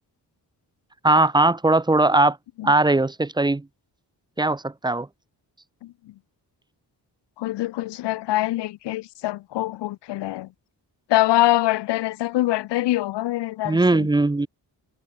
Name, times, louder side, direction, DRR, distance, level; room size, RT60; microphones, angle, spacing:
voice 1, 1.0-2.4 2.6-3.6 4.4-5.1 13.6-14.5, right 2 dB, 10° right, 0.6 m, -19 dB
voice 2, 7.4-10.5 11.1-14.1, left 16 dB, 90° left, 0.6 m, -24 dB
wide cardioid pair, 135°, 41 cm